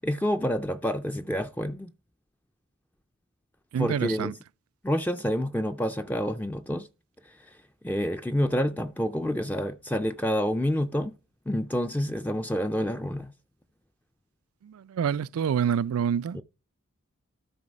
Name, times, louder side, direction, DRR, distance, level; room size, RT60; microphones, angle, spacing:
voice 1, 0.0-1.9 3.8-4.4 4.8-6.9 7.2-7.6 7.8-11.2 11.5-13.3 16.3-16.4, equal, 10° left, 0.4 m, -28 dB
voice 2, 3.7-4.3 14.6-16.4, right 8 dB, 90° right, 0.4 m, -27 dB
13.0 x 4.7 x 5.2 m
head